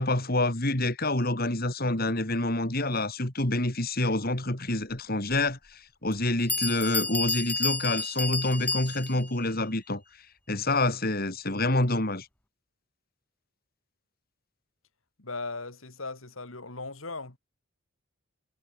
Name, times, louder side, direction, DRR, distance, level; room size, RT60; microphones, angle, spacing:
voice 1, 0.0-10.0 10.5-12.3, left 2 dB, 45° left, 3.2 m, -27 dB
Bell, 6.1-6.2 6.5-9.3, left 3 dB, 5° left, 0.8 m, -30 dB
voice 2, 15.2-17.4, left 3 dB, 65° left, 2.9 m, -38 dB
head